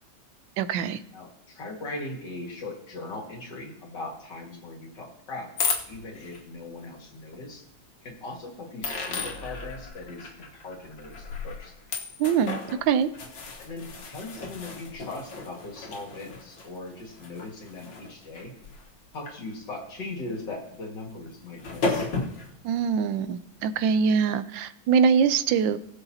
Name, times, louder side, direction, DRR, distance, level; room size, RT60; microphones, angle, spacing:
voice 1, 0.6-1.0 12.2-13.1 22.6-25.8, right 6 dB, 85° right, 13 dB, 1.3 m, -23 dB
voice 2, 1.1-5.6 5.9-7.6 8.0-11.7 13.6-18.5 19.1-22.1, left 2 dB, 65° left, 0 dB, 2.6 m, -39 dB
sound 1, 5.6-6.4 7.3-7.4 8.8-19.3 19.8-20.0 21.3-21.4 21.6-22.6, left 4 dB, 90° left, 2.1 m, -34 dB
20.0 x 6.9 x 2.8 m, 0.74 s
omnidirectional pair, 2.0 m